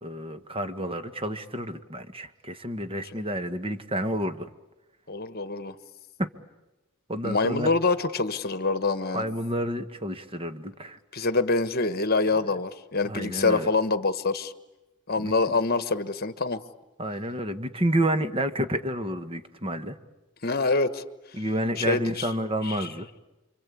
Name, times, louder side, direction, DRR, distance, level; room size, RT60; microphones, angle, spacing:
voice 1, 0.0-4.5 6.2-6.3 7.1-7.7 9.1-11.0 13.0-13.7 15.2-15.3 17.0-20.0 21.3-23.1, right 1 dB, 25° right, 9 dB, 1.4 m, -29 dB
voice 2, 5.1-5.7 7.2-9.2 11.1-14.5 15.1-16.6 20.4-21.0 21.8-22.3 22.6-22.9, left 3 dB, 45° left, 12 dB, 1.4 m, -25 dB
28.0 x 24.5 x 8.5 m, 1.1 s
head